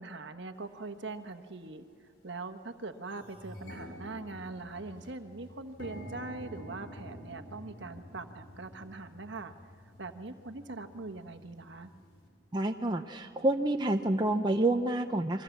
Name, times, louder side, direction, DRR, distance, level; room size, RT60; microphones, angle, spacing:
voice 1, 0.0-1.9 2.2-9.5 10.0-11.9, right 3 dB, 55° right, 7 dB, 1.2 m, -42 dB
sound 1, 0.7-0.8 1.6-1.8 2.2-2.3 2.6-12.3, equal, 60° left, 4.7 m, -49 dB
voice 2, 12.5-15.4, right 2 dB, 20° right, 4 dB, 0.6 m, -28 dB
29.0 x 23.0 x 7.3 m, 2.1 s
head